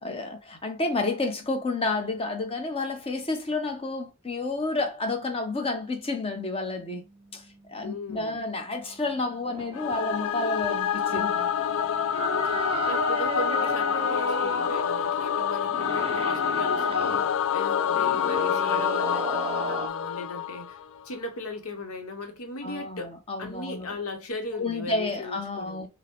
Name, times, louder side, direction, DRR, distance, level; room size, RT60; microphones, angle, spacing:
voice 1, 0.0-7.0 7.3-7.4 7.7-11.7 22.6-24.0 24.6-25.9, left 3 dB, 25° left, 0.8 m, -30 dB
sound 1, 6.3-12.8, right 2 dB, 5° left, 2.0 m, -56 dB
voice 2, 7.8-8.4 12.6-20.8 21.0-23.1 23.4-25.9, left 2 dB, 80° left, 0.9 m, -37 dB
sound 2, 9.5-19.9, right 4 dB, 25° right, 0.3 m, -37 dB
Singing / Musical instrument, 9.7-21.0, left 8 dB, 65° left, 0.4 m, -27 dB
5.4 x 2.1 x 3.0 m
head